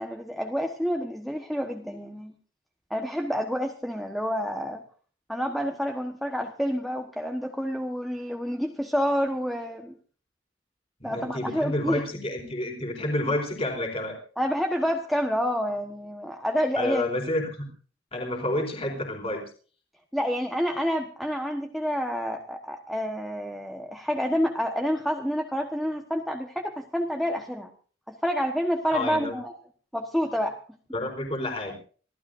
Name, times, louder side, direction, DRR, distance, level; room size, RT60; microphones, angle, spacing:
voice 1, 0.0-2.3 2.9-4.8 5.3-9.9 11.0-12.0 14.4-17.0 20.1-27.7 28.1-29.6 29.9-30.6, equal, ahead, 3 dB, 1.2 m, -28 dB
voice 2, 11.0-14.2 16.8-17.7 18.1-19.4 28.9-29.4 30.9-31.7, left 1 dB, 30° left, 3 dB, 4.3 m, -29 dB
26.0 x 16.0 x 2.6 m, 0.41 s
head